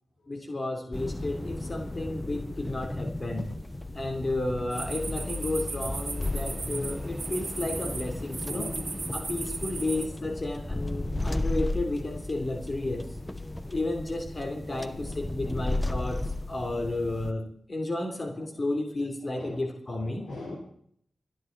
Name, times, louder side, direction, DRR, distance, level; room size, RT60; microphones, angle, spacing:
voice 1, 0.3-3.5 3.9-8.7 9.1-13.1 13.7-16.2 16.5-20.3, left 2 dB, 35° left, 3 dB, 3.3 m, -32 dB
sound 1, 0.9-17.3, left 2 dB, 15° left, 1.1 m, -35 dB
sound 2, 4.7-10.1, right 4 dB, 50° right, 2.0 m, -37 dB
voice 2, 8.5-9.0 9.9-10.1 13.6-13.8 14.7-15.7 19.2-19.6 20.0-20.6, left 1 dB, 85° left, -4 dB, 4.8 m, -42 dB
28.0 x 10.5 x 4.0 m, 0.64 s
cardioid pair, 65°, 0 cm